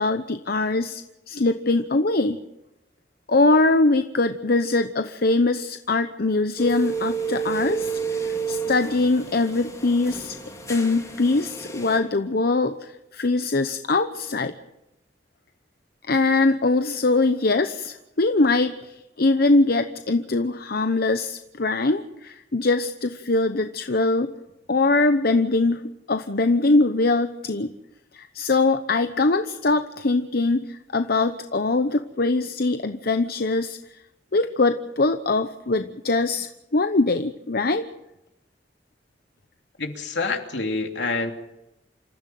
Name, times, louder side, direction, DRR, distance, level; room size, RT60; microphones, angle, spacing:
voice 1, 0.0-2.4 3.3-10.4 10.7-14.5 16.1-24.3 24.7-25.8 26.1-27.7 28.1-33.8 34.3-37.9, left 3 dB, 60° left, 8 dB, 0.9 m, -22 dB
sound 1, 6.6-12.0, right 5 dB, 20° left, 3.9 m, -30 dB
voice 2, 39.8-41.3, left 3 dB, 75° left, 4 dB, 3.0 m, -27 dB
27.5 x 14.5 x 7.7 m, 0.90 s
head